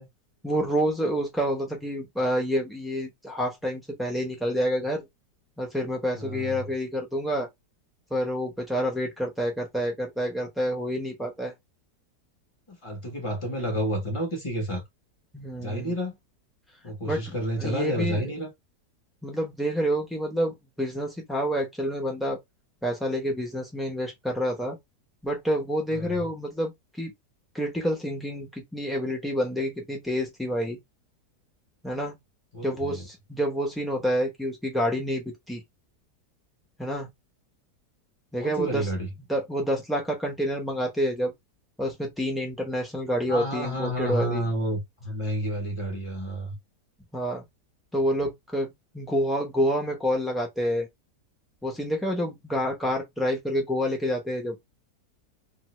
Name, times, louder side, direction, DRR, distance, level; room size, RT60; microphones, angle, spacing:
voice 1, 0.4-5.0 5.6-7.5 8.1-11.5 15.3-15.9 17.1-17.2 17.6-18.2 19.2-22.4 22.8-24.8 25.2-26.7 27.0-27.1 27.5-30.8 31.8-32.1 32.6-35.6 36.8-37.1 38.3-38.9 39.3-41.3 41.8-44.4 47.1-47.5 47.9-50.9 51.6-54.5, equal, ahead, 0.4 m, -28 dB
voice 2, 6.1-6.7 12.7-14.8 15.6-16.1 16.8-18.5 25.9-26.3 32.5-33.0 38.4-39.1 43.3-46.6, equal, 25° left, 0.8 m, -30 dB
2.7 x 2.6 x 3.1 m
omnidirectional pair, 1.8 m